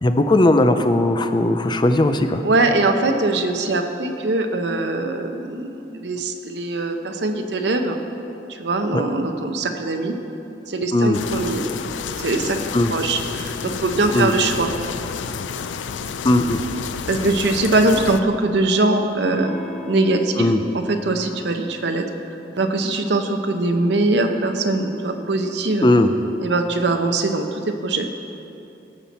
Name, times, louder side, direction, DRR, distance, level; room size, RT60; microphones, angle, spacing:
voice 1, 0.0-2.4 8.9-9.0 10.9-11.2 12.7-12.9 14.1-14.3 16.2-16.6 20.4-20.6 25.8-26.1, left 1 dB, 25° left, 8 dB, 0.4 m, -17 dB
voice 2, 2.4-8.0 8.5-10.1 10.7-11.6 12.2-14.7 17.1-19.5 19.9-20.5 20.7-22.0 22.6-25.9 26.4-28.1, right 2 dB, 65° right, 5 dB, 0.7 m, -22 dB
sound 1, 11.1-18.2, left 6 dB, 80° left, 0.4 m, -30 dB
Electric guitar / Strum, 19.3-24.4, left 1 dB, 40° left, 1.3 m, -40 dB
16.0 x 6.0 x 4.2 m, 2.8 s
head